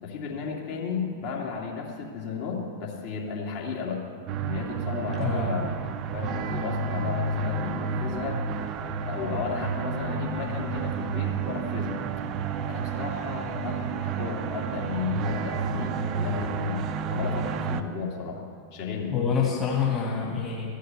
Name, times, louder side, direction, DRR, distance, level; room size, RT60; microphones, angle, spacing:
voice 1, 0.0-4.0 4.4-5.7 6.1-8.4 9.0-12.1 12.6-16.8 17.1-18.4 18.7-19.2, left 5 dB, 50° left, -2 dB, 2.5 m, -33 dB
sound 1, 4.3-17.8, right 5 dB, 35° right, 0.6 m, -30 dB
voice 2, 5.2-5.5 19.1-20.7, left 6 dB, 25° left, -3 dB, 2.1 m, -26 dB
14.0 x 6.5 x 8.2 m, 2.1 s
figure-of-eight pair, 90°, 0 cm